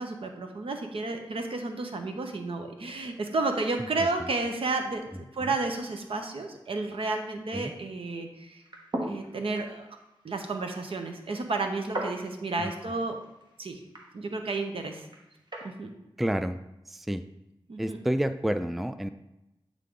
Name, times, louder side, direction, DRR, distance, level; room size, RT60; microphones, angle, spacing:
voice 1, 0.0-8.6 9.1-9.9 10.2-13.2 13.6-13.8 14.1-15.1 15.6-15.9 17.7-18.0, right 3 dB, 70° right, 4 dB, 0.9 m, -32 dB
sound 1, 8.5-15.7, right 1 dB, 50° right, 1.3 m, -41 dB
voice 2, 16.2-16.6 16.9-17.2 17.8-19.1, right 1 dB, ahead, 11 dB, 0.3 m, -30 dB
8.2 x 3.7 x 3.7 m, 0.92 s
cardioid pair, 45°, 10 cm